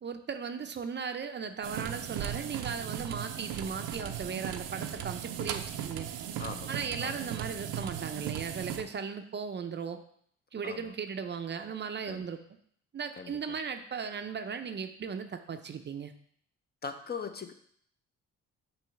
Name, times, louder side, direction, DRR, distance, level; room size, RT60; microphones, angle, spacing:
voice 1, 0.0-6.1 6.7-10.0 10.5-12.4 12.9-16.1, right 6 dB, 35° right, 8 dB, 0.5 m, -37 dB
sound 1, 1.6-8.8, right 10 dB, 85° right, 0.6 m, -37 dB
voice 2, 6.4-7.2 10.6-10.9 12.1-12.3 13.2-13.3 16.8-17.5, left 5 dB, 30° left, 7 dB, 0.6 m, -40 dB
6.2 x 3.1 x 5.7 m, 0.63 s
cardioid pair, 90°, 30 cm